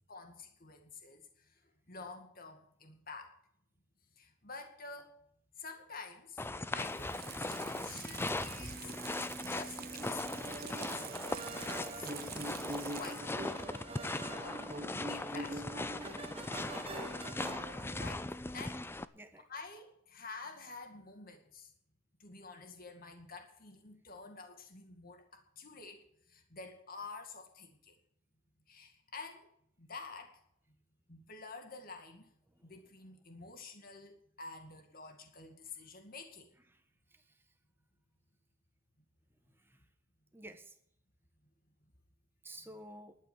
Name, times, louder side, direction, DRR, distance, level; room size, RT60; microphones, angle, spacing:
voice 1, 0.1-3.3 4.1-5.1 5.6-6.4 6.7-8.9 9.4-11.1 12.0-12.6 12.9-13.4 14.2-14.7 15.1-16.1 16.8-17.3 18.0-18.8 19.5-21.7 22.2-28.0 28.7-29.5 29.8-30.4 31.1-32.3 32.6-36.5, left 4 dB, 50° left, 5 dB, 2.1 m, -49 dB
sound 1, 6.4-19.0, left 2 dB, 10° left, 0.4 m, -39 dB
Water tap faucet / Sink (filling or washing), 6.8-13.5 13.9-14.0, right 12 dB, 50° right, 0.7 m, -48 dB
sound 2, 9.8-18.1, right 1 dB, 30° right, 1.1 m, -44 dB
voice 2, 39.5-39.8 40.3-40.8 42.4-43.2, right 1 dB, 10° right, 7 dB, 1.3 m, -52 dB
12.0 x 8.9 x 8.9 m, 0.70 s
head